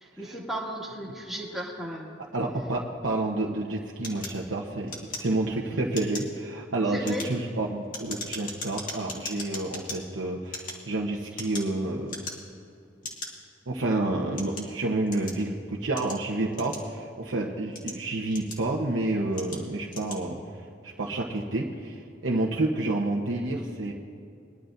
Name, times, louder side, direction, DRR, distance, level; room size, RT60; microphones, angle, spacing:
voice 1, 0.0-2.1 6.9-7.3, equal, ahead, -3 dB, 2.0 m, -35 dB
voice 2, 2.3-4.9 5.2-12.3 13.7-20.4 20.8-23.9, right 2 dB, 80° right, -3 dB, 1.1 m, -29 dB
sound 1, 4.0-5.6 5.9-6.4 6.9-10.0 10.4-11.8 12.1-12.6 13.0-13.3 14.0-15.4 16.0-17.1 17.6-18.8 19.3-19.6 19.9-20.2, left 3 dB, 45° left, 2.3 m, -38 dB
22.0 x 11.5 x 2.6 m, 2.5 s
head